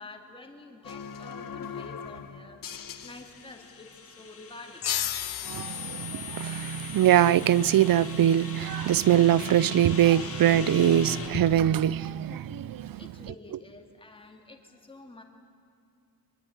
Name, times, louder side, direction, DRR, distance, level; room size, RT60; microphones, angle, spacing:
voice 1, 0.0-2.6 3.0-4.9 13.0-15.2, left 2 dB, 15° left, 2.4 m, -48 dB
sound 1, 0.8-3.8, left 6 dB, 60° left, 1.5 m, -41 dB
sound 2, 2.7-11.5, left 4 dB, 35° left, 2.3 m, -41 dB
sound 3, 4.8-8.1, left 11 dB, 90° left, 1.2 m, -35 dB
voice 2, 5.4-13.3, right 11 dB, 60° right, 0.6 m, -23 dB
23.5 x 21.5 x 9.7 m
wide cardioid pair, 180°, 38 cm